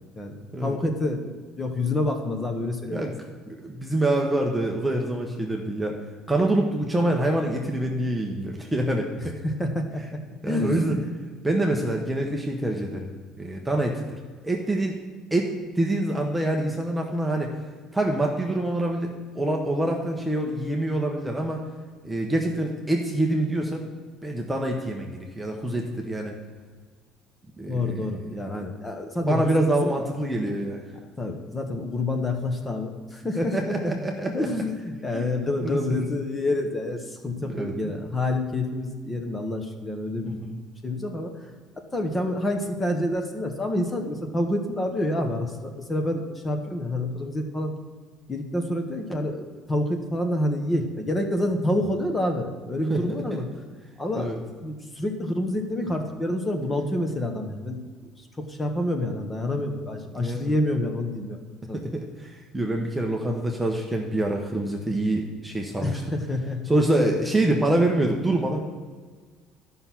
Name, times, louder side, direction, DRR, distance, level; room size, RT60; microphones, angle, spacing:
voice 1, 0.6-3.1 9.4-11.1 27.7-30.0 31.2-34.0 34.3-40.5 40.8-41.3 41.8-47.7 48.3-49.4 49.7-53.4 54.0-57.8 58.4-61.4 61.7-61.8 65.8-66.6, left 1 dB, 15° left, 4 dB, 1.0 m, -28 dB
voice 2, 3.5-6.0 6.3-9.4 10.4-11.0 11.4-13.1 13.4-14.2 14.4-15.0 15.3-15.5 15.8-17.5 17.9-21.6 22.0-23.9 24.2-26.3 27.6-28.6 29.2-30.8 33.3-34.5 35.1-35.3 35.6-36.1 37.4-37.9 40.2-40.6 52.9-53.4 54.1-54.4 60.1-60.6 61.7-66.0 66.7-68.6, right 1 dB, 5° right, 0 dB, 0.8 m, -26 dB
12.0 x 5.6 x 5.9 m, 1.5 s
cardioid pair, 155°, 0 cm